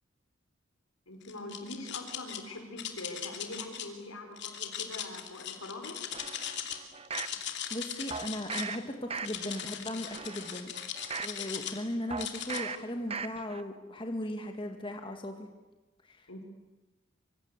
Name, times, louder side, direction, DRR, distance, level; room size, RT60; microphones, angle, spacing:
voice 1, 1.1-6.0 16.3-16.4, left 2 dB, 85° left, 5 dB, 5.1 m, -43 dB
sound 1, 1.2-2.4 2.8-3.9 4.4-6.8 7.0-8.7 9.2-11.8 12.2-12.6, left 9 dB, 55° left, 2.7 m, -39 dB
sound 2, 6.1-7.4 8.1-8.8 9.1-9.6 10.1-11.4 12.1-12.8 13.1-13.6 14.0-14.1, right 5 dB, 30° right, 0.9 m, -39 dB
voice 2, 7.7-10.7 11.2-15.5 16.1-16.4, left 1 dB, 25° left, 4 dB, 2.0 m, -37 dB
25.5 x 24.5 x 8.3 m, 1.1 s
head